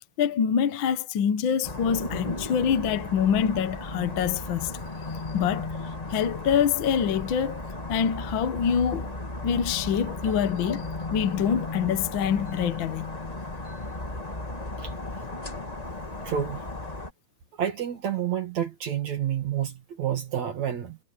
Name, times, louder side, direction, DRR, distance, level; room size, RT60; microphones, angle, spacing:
voice 1, 0.2-4.8 5.1-5.7 6.1-7.6 7.9-9.1 9.4-13.1, left 8 dB, 60° left, 1.3 m, -25 dB
sound 1, 1.6-17.1, left 2 dB, 15° left, 1.8 m, -35 dB
voice 2, 16.2-16.6 17.6-21.0, right 9 dB, 70° right, 3.4 m, -29 dB
omnidirectional pair, 3.4 m